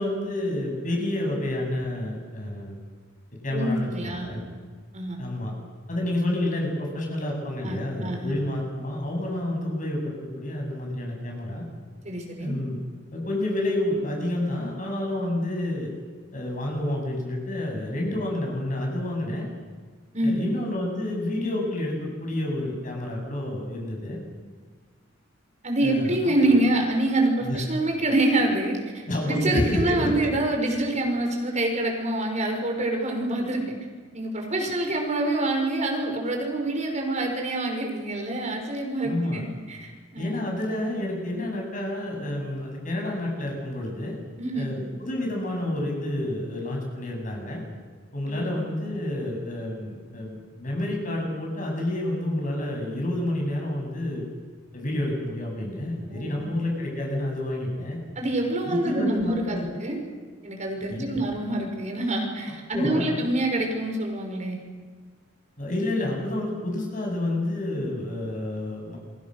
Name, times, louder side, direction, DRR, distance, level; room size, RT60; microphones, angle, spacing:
voice 1, 0.0-2.8 3.4-4.5 5.2-5.5 5.9-11.6 12.4-12.8 13.1-15.9 16.3-19.5 20.2-24.2 25.8-26.2 26.5-26.6 27.4-27.6 29.1-30.3 39.0-39.4 40.2-44.2 44.5-47.6 48.1-54.2 54.7-58.0 58.6-59.6 60.9-61.0 62.7-63.1 65.6-69.0, left 1 dB, 45° left, 0 dB, 7.9 m, -29 dB
voice 2, 3.5-4.4 4.9-5.2 7.6-8.3 12.0-12.5 20.1-20.5 25.6-33.8 34.1-40.4 44.4-44.7 48.3-48.5 56.1-56.5 58.2-60.0 60.4-64.6, right 1 dB, 40° right, 2 dB, 5.6 m, -26 dB
29.0 x 23.5 x 6.7 m, 1.5 s
head